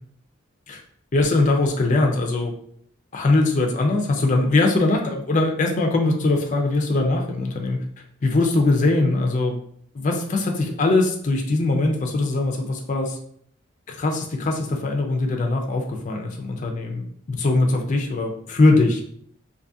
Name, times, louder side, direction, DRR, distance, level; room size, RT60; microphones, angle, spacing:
voice 1, 1.1-2.5 3.1-7.8 8.2-9.6 9.9-13.2 13.9-19.0, left 2 dB, 35° left, 2 dB, 0.4 m, -21 dB
2.6 x 2.4 x 2.6 m, 0.65 s
head